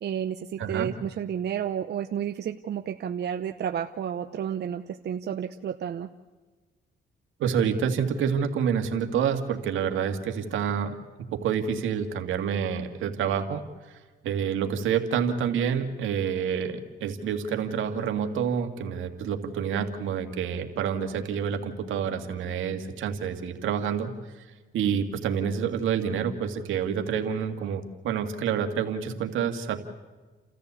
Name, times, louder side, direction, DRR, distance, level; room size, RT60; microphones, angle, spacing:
voice 1, 0.0-6.1, right 9 dB, 55° right, 7 dB, 0.8 m, -31 dB
voice 2, 0.6-0.9 7.4-11.0 11.3-24.5 24.7-29.8, right 7 dB, 80° right, 5 dB, 2.1 m, -28 dB
30.0 x 14.0 x 8.3 m, 1.3 s
cardioid pair, 90°, 20 cm